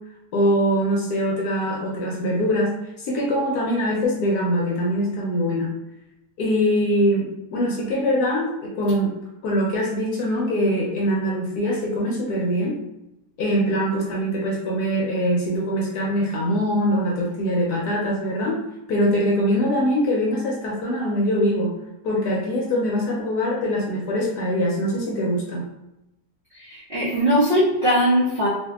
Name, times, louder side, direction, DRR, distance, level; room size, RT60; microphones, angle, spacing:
voice 1, 0.3-5.7 6.4-9.1 9.4-12.8 13.4-18.6 18.9-21.7 22.0-25.6, equal, 70° left, -2 dB, 1.0 m, -23 dB
voice 2, 26.5-28.5, equal, 75° right, -9 dB, 0.5 m, -20 dB
2.7 x 2.5 x 2.3 m, 0.90 s
omnidirectional pair, 1.9 m